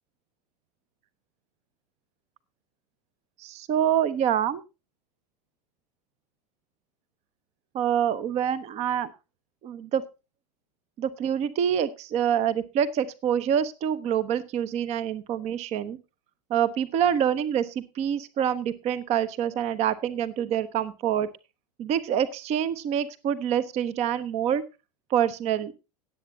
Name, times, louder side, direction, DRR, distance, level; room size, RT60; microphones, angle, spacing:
voice 1, 3.4-4.6 7.7-9.1 9.6-10.0 11.0-16.0 16.5-21.3 21.8-24.6 25.1-25.7, right 9 dB, 30° right, 17 dB, 0.8 m, -26 dB
18.0 x 8.3 x 2.7 m, 0.28 s
figure-of-eight pair, 85°, 21 cm